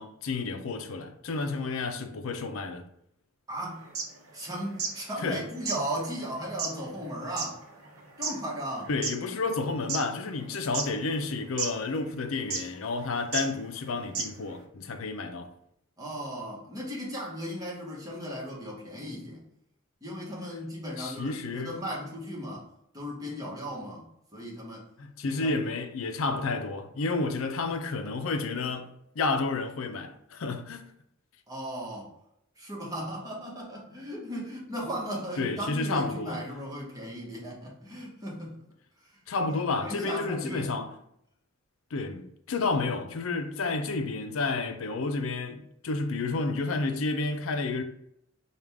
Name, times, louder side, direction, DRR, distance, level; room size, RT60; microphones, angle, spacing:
voice 1, 0.0-2.8 5.2-5.4 8.9-15.5 21.0-21.8 25.0-30.9 35.4-36.4 39.3-40.9 41.9-47.8, left 3 dB, 70° left, 0.5 m, -31 dB
voice 2, 3.5-3.9 4.3-7.6 8.2-8.9 16.0-19.4 20.0-22.7 22.9-24.1 24.3-24.8 25.2-25.5 31.5-32.1 32.6-38.6 39.0-39.1 39.8-40.7, equal, 20° right, 1.2 m, -36 dB
sound 1, 3.8-5.0 5.3-5.4 5.6-9.2 9.7-10.4 10.7-11.3 11.6-11.7 12.5-12.8 13.3-13.5 13.8-13.9 14.1-14.5, right 4 dB, 85° right, 0.8 m, -33 dB
4.9 x 2.4 x 3.5 m
head